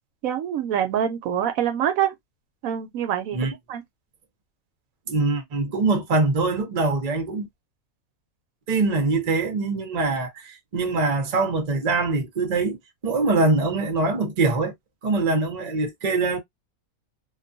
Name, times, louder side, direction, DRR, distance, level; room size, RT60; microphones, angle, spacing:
voice 1, 0.2-2.1 2.6-3.4 3.7-3.8, right 9 dB, 80° right, 1.0 m, -25 dB
voice 2, 5.1-7.5 8.7-12.8 13.0-14.7 15.0-16.4, right 3 dB, 40° right, 0.7 m, -23 dB
2.4 x 2.3 x 2.5 m
omnidirectional pair, 1.5 m